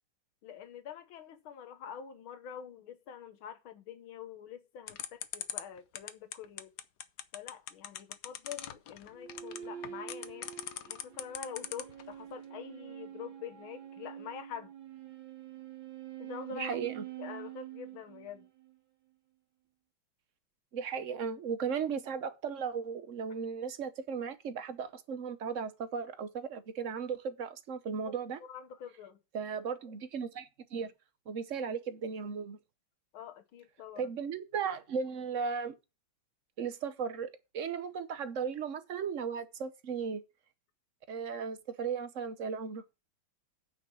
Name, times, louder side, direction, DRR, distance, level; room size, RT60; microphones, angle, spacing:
voice 1, 0.4-6.7 7.3-10.5 10.8-14.7 16.2-16.9 17.2-18.5 28.1-29.2 33.1-34.1, left 8 dB, 85° left, 1.9 m, -46 dB
sound 1, 4.9-12.0, left 10 dB, 65° left, 1.1 m, -40 dB
sound 2, 9.1-18.8, right 11 dB, 75° right, 2.2 m, -46 dB
voice 2, 16.5-17.0 20.7-28.4 29.3-30.9 31.3-32.6 34.0-35.7 36.6-40.2 41.1-42.8, right 6 dB, 50° right, 1.0 m, -36 dB
9.2 x 5.9 x 6.1 m
omnidirectional pair, 2.2 m